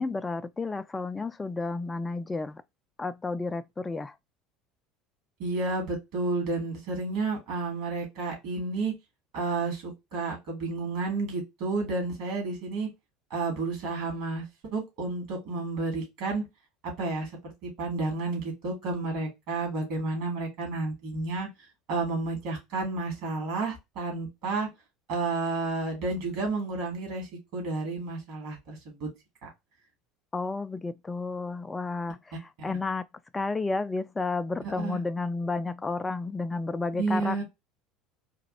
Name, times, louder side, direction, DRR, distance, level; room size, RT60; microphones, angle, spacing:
voice 1, 0.0-2.6 3.0-4.2 30.3-33.0 33.3-37.4, left 3 dB, 15° left, 0.3 m, -31 dB
voice 2, 5.4-8.9 9.3-12.9 13.3-14.4 14.7-16.4 16.8-21.5 21.9-24.7 25.1-29.1 29.4-29.5 34.8-35.0 37.0-37.4, right 3 dB, 60° right, 2.0 m, -31 dB
4.0 x 2.4 x 2.7 m
figure-of-eight pair, 70°, 0 cm